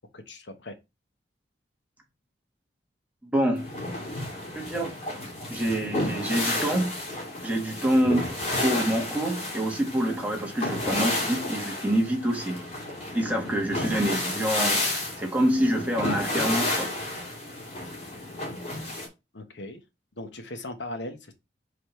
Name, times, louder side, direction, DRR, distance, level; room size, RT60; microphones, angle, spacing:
voice 1, 0.1-0.7 13.3-13.5 19.3-19.8 20.2-21.3, left 1 dB, 90° left, 1.1 m, -38 dB
voice 2, 3.2-3.7 4.6-4.9 5.5-7.0 7.4-8.3 8.6-12.6 13.1-14.8 15.2-16.9, right 1 dB, 10° right, 1.6 m, -26 dB
sound 1, 3.6-19.1, left 1 dB, 40° left, 2.6 m, -31 dB
5.1 x 4.1 x 4.4 m
head